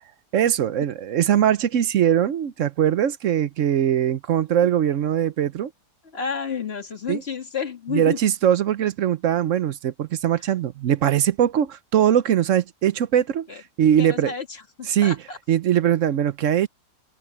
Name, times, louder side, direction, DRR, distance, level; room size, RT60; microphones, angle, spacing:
voice 1, 0.3-5.7 7.1-7.2 7.9-14.3 14.9-15.2 15.5-16.7, right 10 dB, 60° right, 0.9 m, -21 dB
voice 2, 6.1-8.2 10.4-10.5 13.5-13.6 14.0-15.4, left 6 dB, 40° left, 2.0 m, -31 dB
open air
omnidirectional pair, 1.7 m